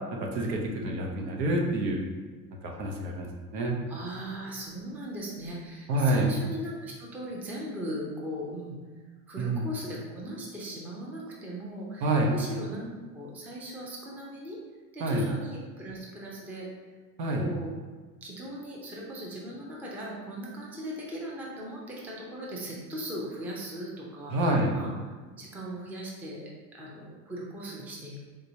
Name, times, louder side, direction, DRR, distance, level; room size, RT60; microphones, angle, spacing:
voice 1, 0.2-2.0 2.6-3.8 5.9-6.3 9.4-9.6 12.0-12.3 15.0-15.3 17.2-17.5 24.3-24.8, right 1 dB, 90° right, 0 dB, 0.8 m, -27 dB
voice 2, 3.9-8.8 9.3-14.6 14.9-16.7 17.4-17.7 18.2-24.9 25.3-28.2, equal, 5° right, -4 dB, 0.3 m, -38 dB
3.4 x 2.9 x 2.7 m, 1.4 s
supercardioid pair, 100°, 49 cm